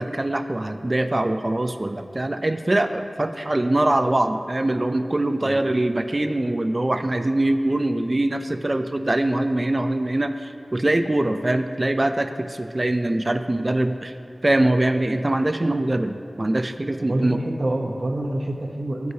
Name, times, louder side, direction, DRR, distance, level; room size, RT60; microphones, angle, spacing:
voice 1, 0.0-14.1 14.4-17.4, right 1 dB, 35° right, 8 dB, 0.3 m, -23 dB
voice 2, 17.0-19.1, right 1 dB, 55° right, -1 dB, 0.8 m, -26 dB
14.0 x 4.7 x 2.7 m, 2.4 s
wide cardioid pair, 70°, 0 cm